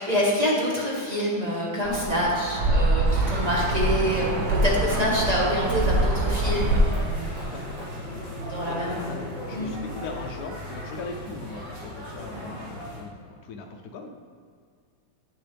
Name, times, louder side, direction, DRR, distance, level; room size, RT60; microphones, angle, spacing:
voice 1, 0.0-7.1 8.5-9.2 9.5-9.7, equal, 20° right, -5 dB, 1.4 m, -26 dB
sound 1, 1.8-6.8, right 2 dB, 70° right, 0.7 m, -25 dB
sound 2, 3.1-13.0, equal, 85° right, 2.8 m, -35 dB
voice 2, 8.7-9.2 9.5-14.1, left 4 dB, 70° left, 2 dB, 0.9 m, -39 dB
9.5 x 6.5 x 3.4 m, 2.1 s
omnidirectional pair, 2.2 m